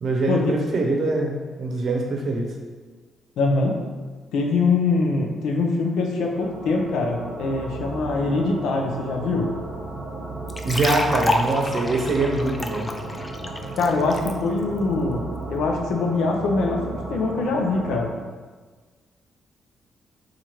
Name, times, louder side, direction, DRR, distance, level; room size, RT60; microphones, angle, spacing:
voice 1, 0.0-2.5 10.6-12.9, right 2 dB, 60° right, 1 dB, 0.7 m, -23 dB
voice 2, 3.4-3.8 4.3-9.5 13.8-18.1, left 3 dB, 90° left, 1 dB, 0.5 m, -23 dB
sound 1, 6.3-18.1, right 2 dB, 90° right, 0.9 m, -34 dB
sound 2, 10.5-14.3, left 1 dB, 25° left, 0.3 m, -28 dB
2.9 x 2.5 x 4.3 m, 1.4 s
cardioid pair, 80°, 0 cm